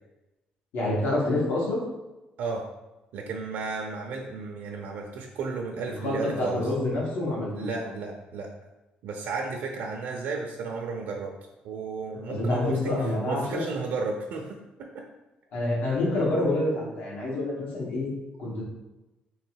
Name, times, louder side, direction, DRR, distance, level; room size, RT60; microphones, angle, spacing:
voice 1, 0.7-1.8 5.8-7.9 12.3-13.6 15.5-18.1 18.4-18.6, left 2 dB, 90° left, -4 dB, 1.5 m, -27 dB
voice 2, 3.1-6.7 7.5-8.5 9.0-11.4 11.6-12.9 13.3-15.1, right 4 dB, 90° right, 1 dB, 0.6 m, -33 dB
3.4 x 3.2 x 4.7 m, 1.0 s
cardioid pair, 150°, 3 cm